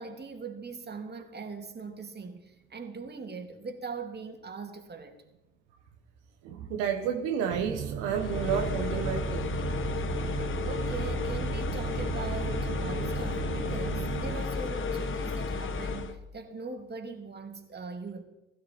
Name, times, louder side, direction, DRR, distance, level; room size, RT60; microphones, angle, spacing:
voice 1, 0.0-5.2 10.6-18.2, right 4 dB, 35° right, 2.4 m, -41 dB
voice 2, 6.4-9.5, right 7 dB, 80° right, 1.4 m, -30 dB
sound 1, 7.5-14.4, right 10 dB, 55° right, 1.1 m, -36 dB
sound 2, 8.1-16.2, left 4 dB, 40° left, 1.4 m, -33 dB
16.5 x 12.0 x 4.5 m
hypercardioid pair, 55°, 30 cm